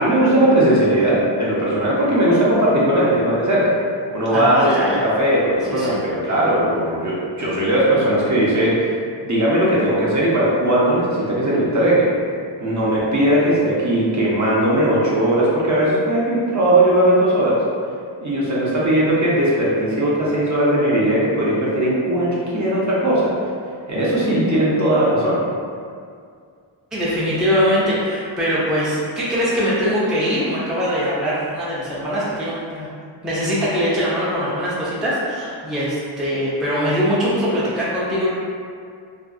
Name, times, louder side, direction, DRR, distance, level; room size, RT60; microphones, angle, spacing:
voice 1, 0.0-3.7 4.1-9.0 9.2-12.1 12.6-17.6 18.2-23.3 23.9-25.4, right 1 dB, 40° right, -7 dB, 0.7 m, -18 dB
voice 2, 4.3-5.0 5.7-6.0 26.9-32.9 33.2-38.3, equal, ahead, -8 dB, 0.4 m, -22 dB
2.5 x 2.3 x 2.4 m, 2.2 s
wide cardioid pair, 95°, 46 cm